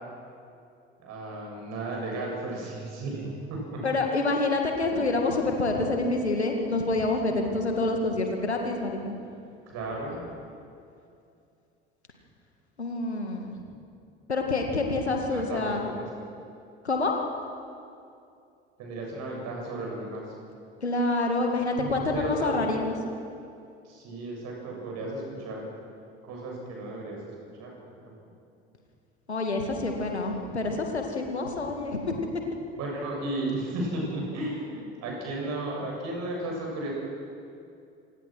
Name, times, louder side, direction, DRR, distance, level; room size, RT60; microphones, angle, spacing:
voice 1, 1.0-3.8 9.7-10.2 15.3-16.1 18.8-20.2 21.8-22.6 23.8-25.6 26.2-27.2 27.6-28.1 32.8-36.9, right 2 dB, 55° right, -1 dB, 7.5 m, -34 dB
voice 2, 3.8-9.1 12.8-13.6 14.3-15.9 16.8-17.1 20.8-23.0 29.3-32.2, left 2 dB, 90° left, 2 dB, 2.2 m, -27 dB
25.0 x 18.5 x 6.2 m, 2.5 s
figure-of-eight pair, 60°, 32 cm